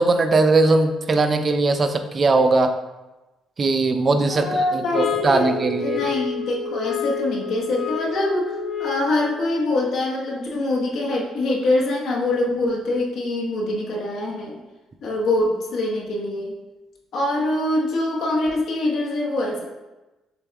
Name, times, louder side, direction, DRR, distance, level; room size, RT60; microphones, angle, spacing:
voice 1, 0.0-2.7 3.6-6.1, right 3 dB, 35° right, 7 dB, 0.4 m, -19 dB
voice 2, 4.2-14.6 15.0-16.5 17.1-19.6, left 2 dB, 70° left, -2 dB, 1.0 m, -24 dB
sound 1, 4.9-9.3, left 7 dB, 50° left, 1.2 m, -29 dB
6.7 x 2.3 x 3.4 m, 1.1 s
cardioid pair, 90°, 0 cm